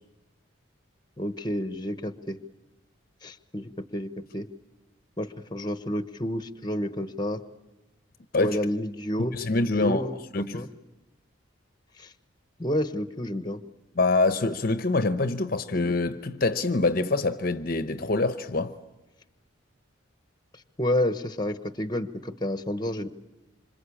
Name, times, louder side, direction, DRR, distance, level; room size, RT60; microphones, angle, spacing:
voice 1, 1.2-2.4 3.2-4.5 5.2-7.4 8.4-10.7 12.0-12.1 12.6-13.6 20.5-23.1, left 1 dB, 20° left, 1.1 m, -30 dB
voice 2, 9.3-10.1 10.3-10.6 14.0-18.7, left 3 dB, 45° left, 0.9 m, -25 dB
26.5 x 26.0 x 8.6 m
head